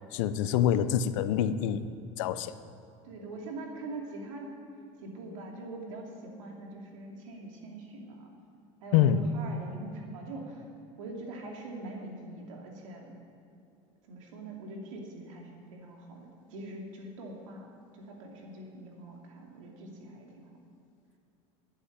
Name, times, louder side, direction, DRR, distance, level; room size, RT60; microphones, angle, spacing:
voice 1, 0.0-1.8 2.2-2.5 8.9-9.2, left 10 dB, 80° left, 13 dB, 0.7 m, -26 dB
voice 2, 3.0-4.5 5.0-8.3 8.8-10.6 11.0-13.2 14.1-17.7 17.9-20.4, right 2 dB, 90° right, 0 dB, 2.6 m, -43 dB
11.5 x 8.6 x 9.8 m, 2.4 s
supercardioid pair, 100°, 16 cm